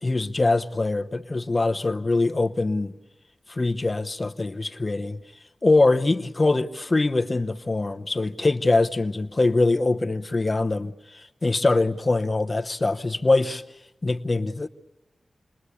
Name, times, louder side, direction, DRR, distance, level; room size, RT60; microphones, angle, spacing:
voice 1, 0.0-2.9 3.5-5.2 5.6-13.6 14.0-14.7, left 2 dB, 30° left, 0.8 m, -23 dB
28.5 x 21.0 x 8.4 m
wide cardioid pair, 110°, 0 cm